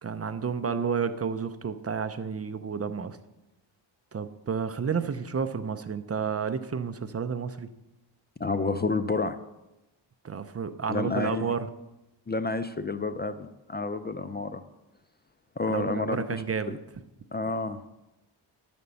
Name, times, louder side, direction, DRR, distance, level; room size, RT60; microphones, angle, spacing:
voice 1, 0.0-3.2 4.1-7.7 10.2-11.7 15.7-16.8, right 6 dB, 35° right, 11 dB, 0.6 m, -31 dB
voice 2, 8.4-9.4 10.9-11.5 12.3-14.6 15.6-16.8 17.3-17.8, left 3 dB, 25° left, 10 dB, 0.4 m, -30 dB
11.0 x 5.2 x 6.9 m, 0.96 s
cardioid pair, 85°, 45 cm